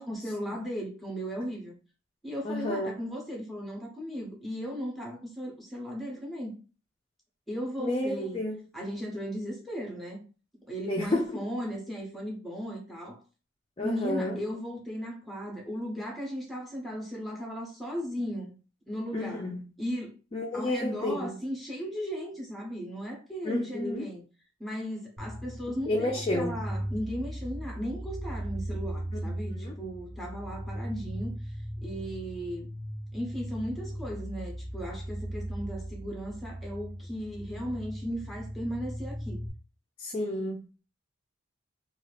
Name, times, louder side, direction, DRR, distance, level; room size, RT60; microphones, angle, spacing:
voice 1, 0.0-1.7 2.2-6.5 7.5-8.4 8.7-10.2 10.7-13.2 13.8-18.5 18.9-19.4 19.8-20.1 20.5-24.2 24.6-31.5 31.8-32.7 33.1-39.4, equal, ahead, 0.7 m, -36 dB
voice 2, 2.4-2.9 7.8-8.6 10.9-11.4 13.8-14.4 19.1-19.6 20.3-21.3 23.4-24.1 25.9-26.6 29.4-29.7 40.0-40.8, left 1 dB, 25° left, 0.4 m, -31 dB
sound 1, 25.2-39.5, right 1 dB, 30° right, 0.7 m, -38 dB
2.7 x 2.4 x 3.2 m
head